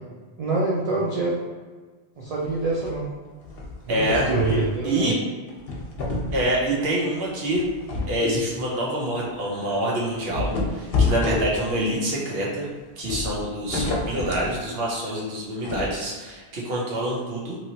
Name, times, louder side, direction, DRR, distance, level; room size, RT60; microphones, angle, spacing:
voice 1, 0.4-1.4 2.2-3.1 3.9-5.1, right 3 dB, 50° right, -5 dB, 0.5 m, -25 dB
sound 1, 2.4-3.0 3.4-4.8 5.5-6.7 7.5-8.2 8.6-8.7 9.1-9.2 10.2-11.9 13.0-14.5 15.6-15.9, left 3 dB, 70° left, 0.9 m, -28 dB
voice 2, 3.9-4.3 4.8-5.1 6.3-7.6 8.1-12.7 13.0-17.6, right 1 dB, 70° right, -4 dB, 1.0 m, -26 dB
2.9 x 2.8 x 2.7 m, 1.4 s
omnidirectional pair, 1.1 m